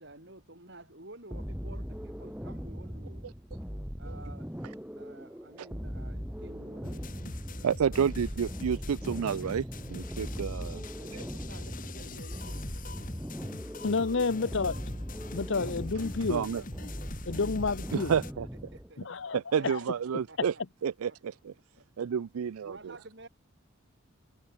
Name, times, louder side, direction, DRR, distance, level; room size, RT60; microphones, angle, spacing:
voice 1, 0.0-3.3 4.0-4.5 5.0-7.1 7.5-8.4 10.9-13.0 14.4-15.0 18.7-19.0 19.6-19.9 20.3-20.4 21.1-21.2 21.8-21.9 22.6-23.3, right 2 dB, 50° right, 5.1 m, -51 dB
sound 1, 1.3-18.9, equal, 5° right, 1.4 m, -40 dB
sound 2, 6.8-18.3, left 2 dB, 40° left, 2.0 m, -43 dB
voice 2, 7.6-10.8 16.3-16.6 17.9-18.5 19.3-20.5 20.8-21.5 22.0-22.9, right 7 dB, 85° right, 0.4 m, -30 dB
voice 3, 13.8-14.7 15.3-16.4 17.3-18.1 19.0-19.4 19.6-19.8, left 4 dB, 60° left, 0.7 m, -29 dB
head